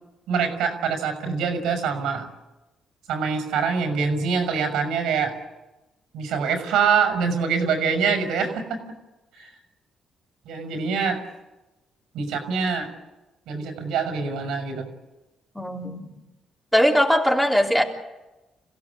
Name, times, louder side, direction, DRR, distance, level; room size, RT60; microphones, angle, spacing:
voice 1, 0.3-2.3 3.1-5.4 6.1-8.8 9.3-9.5 10.5-11.2 12.1-12.9 13.5-14.9, right 5 dB, 90° right, 6 dB, 6.1 m, -24 dB
voice 2, 15.6-16.1 16.7-17.8, equal, 5° left, 0 dB, 3.5 m, -20 dB
27.5 x 16.5 x 8.5 m, 1.1 s
cardioid pair, 90°, 0 cm